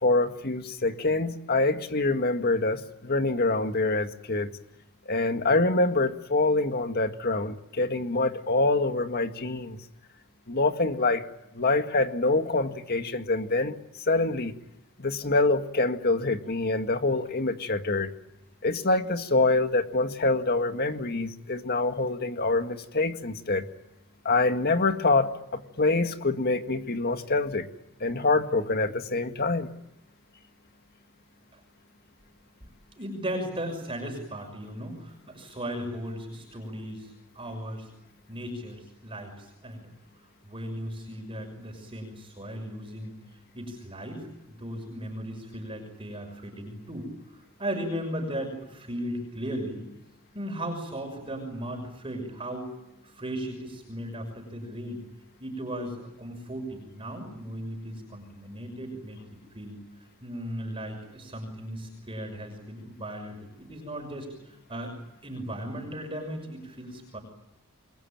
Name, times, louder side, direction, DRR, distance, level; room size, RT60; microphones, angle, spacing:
voice 1, 0.0-4.5 5.1-9.8 10.5-11.3 11.5-13.8 14.0-14.5 15.0-18.1 18.6-23.6 24.3-27.7 28.0-29.7, left 3 dB, 45° left, 7 dB, 1.9 m, -25 dB
voice 2, 33.0-37.9 38.3-39.9 40.4-43.2 43.5-49.8 50.3-52.7 53.0-55.0 55.4-59.2 59.5-59.8 60.2-64.9 65.2-67.2, equal, 25° right, 3 dB, 6.2 m, -36 dB
28.5 x 22.0 x 9.0 m, 0.87 s
head